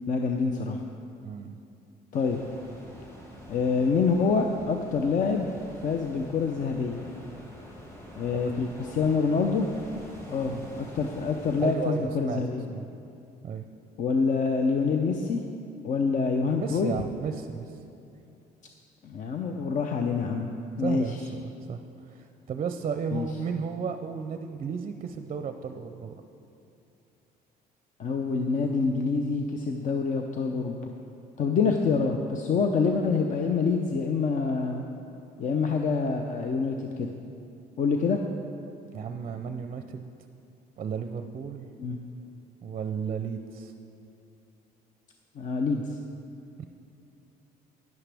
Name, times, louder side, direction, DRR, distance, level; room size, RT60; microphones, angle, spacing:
voice 1, 0.1-0.8 2.1-2.4 3.5-5.4 5.8-7.0 8.2-9.7 10.3-12.6 14.0-15.4 15.8-16.9 19.0-21.2 23.1-23.3 28.0-30.8 31.4-34.8 35.4-37.1 37.8-38.2 41.8-42.0 45.4-46.0, left 4 dB, 50° left, 4 dB, 0.6 m, -26 dB
voice 2, 1.2-1.6 10.4-10.6 11.6-12.4 12.7-12.9 13.4-13.6 16.6-17.8 20.8-21.8 22.1-26.2 38.9-40.1 40.8-41.7 42.6-43.7 46.6-46.7, right 6 dB, 40° right, 7 dB, 0.5 m, -34 dB
sound 1, 2.1-11.8, equal, 15° left, 1.9 m, -46 dB
11.0 x 10.5 x 3.4 m, 2.7 s
cardioid pair, 110°, 17 cm